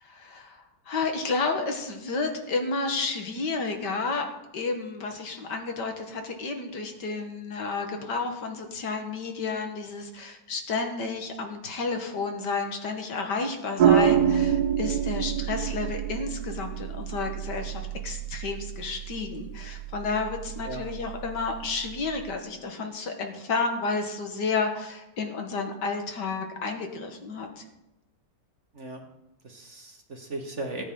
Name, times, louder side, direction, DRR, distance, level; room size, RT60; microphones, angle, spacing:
voice 1, 0.0-4.3 4.5-27.6, left 4 dB, 65° left, 4 dB, 2.0 m, -31 dB
sound 1, 13.8-22.3, right 9 dB, 65° right, 1.0 m, -27 dB
voice 2, 28.7-29.1 29.4-30.8, right 2 dB, 45° right, 3 dB, 1.4 m, -37 dB
18.0 x 9.1 x 3.8 m, 0.92 s
omnidirectional pair, 2.0 m